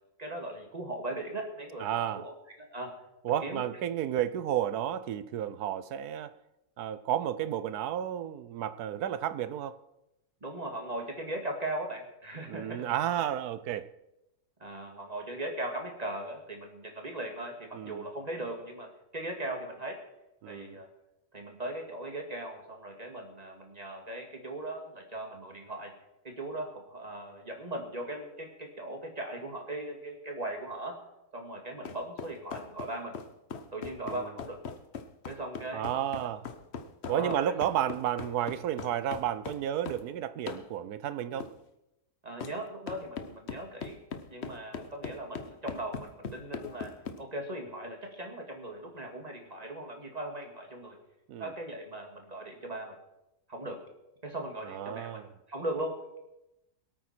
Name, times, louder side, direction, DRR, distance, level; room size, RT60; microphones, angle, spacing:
voice 1, 0.2-2.9 3.4-3.6 10.4-12.9 14.6-20.0 20.5-20.9 21.3-25.9 26.2-31.0 31.3-33.1 33.7-34.6 35.3-35.9 36.2-36.4 37.1-37.5 42.2-44.0 44.3-46.9 47.2-51.0 51.4-53.0 53.5-53.8 54.2-56.0, right 1 dB, 25° right, 2.2 m, -39 dB
voice 2, 1.8-2.2 3.2-6.3 6.8-9.8 12.5-13.9 17.7-18.1 20.4-20.8 34.0-34.2 35.7-36.4 37.1-41.5 51.3-51.5 54.6-55.3, right 10 dB, 80° right, 1.2 m, -32 dB
sound 1, 31.8-40.1 40.5-40.7 41.4-41.5 42.4-42.6 42.9-47.2, left 5 dB, 50° left, 1.1 m, -40 dB
23.0 x 8.8 x 4.4 m
omnidirectional pair, 1.7 m